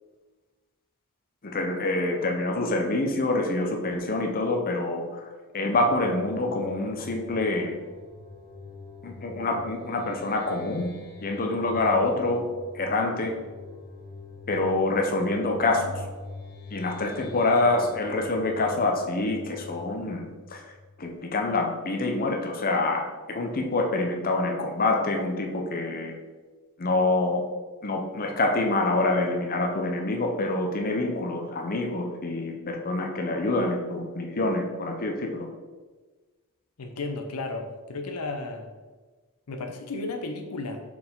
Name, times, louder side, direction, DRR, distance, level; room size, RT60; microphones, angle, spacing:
voice 1, 1.4-5.0 5.5-7.8 9.0-10.9 11.2-12.5 12.7-13.3 14.5-16.0 16.7-20.3 20.5-20.6 21.0-23.0 23.3-26.1 26.8-27.4 27.8-35.5, left 2 dB, 40° left, 2 dB, 0.7 m, -26 dB
sound 1, 5.7-21.2, left 3 dB, 20° left, 2.0 m, -45 dB
voice 2, 36.8-38.7 39.5-40.8, left 3 dB, 85° left, 5 dB, 0.7 m, -33 dB
5.8 x 4.8 x 3.6 m, 1.3 s
head